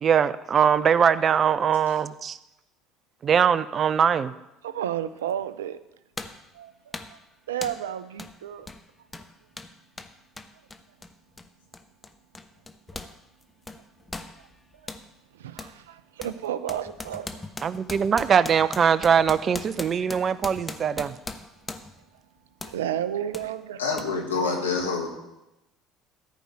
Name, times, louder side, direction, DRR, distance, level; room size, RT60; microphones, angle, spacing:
voice 1, 0.0-2.4 3.2-4.3 17.6-21.2, right 7 dB, 40° right, 0.6 m, -22 dB
voice 2, 4.6-5.8 6.5-6.7 7.5-8.7 15.4-17.3 22.6-23.8, right 10 dB, 80° right, 0.6 m, -31 dB
sound 1, 5.3-5.4 6.2-6.5 6.9-7.2 7.6-7.9 8.2-8.4 8.6-13.2 13.4-15.1 15.6-15.8 16.2-22.0 22.6-22.8 23.3-23.5 24.0-24.1, left 2 dB, 15° left, 1.1 m, -39 dB
voice 3, 23.8-25.1, left 4 dB, 90° left, 1.8 m, -26 dB
14.0 x 5.4 x 8.7 m
hypercardioid pair, 65°, 0 cm